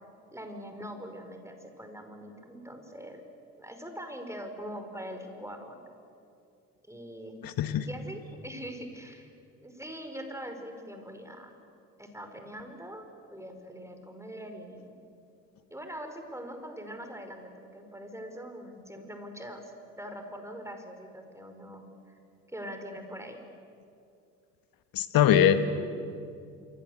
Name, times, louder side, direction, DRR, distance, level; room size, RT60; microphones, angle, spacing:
voice 1, 0.3-3.2 3.6-5.8 6.9-7.4 7.8-9.3 9.6-11.5 12.0-13.0 13.3-15.0 15.7-19.6 19.9-22.2 22.5-23.4, equal, 5° right, 6 dB, 5.1 m, -42 dB
voice 2, 7.4-7.9 24.9-25.6, left 10 dB, 50° left, 11 dB, 1.5 m, -22 dB
26.5 x 24.5 x 8.1 m, 2.5 s
figure-of-eight pair, 55°, 45 cm